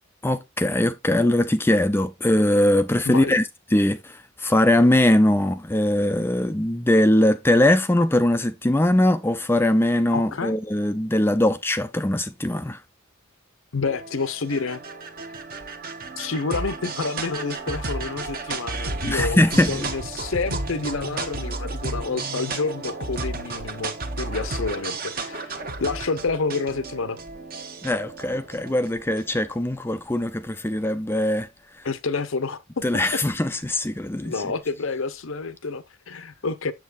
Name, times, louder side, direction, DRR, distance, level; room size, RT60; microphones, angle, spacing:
voice 1, 0.2-12.8 19.1-19.9 27.8-31.5 31.7-31.9 32.8-34.5, left 1 dB, 10° left, 0.4 m, -21 dB
voice 2, 3.1-3.4 10.1-10.6 13.7-14.8 16.2-27.2 31.8-32.8 33.1-33.2 34.2-36.7, left 4 dB, 65° left, 0.7 m, -29 dB
sound 1, 13.8-29.4, right 3 dB, 40° right, 1.0 m, -33 dB
7.3 x 7.2 x 2.5 m
head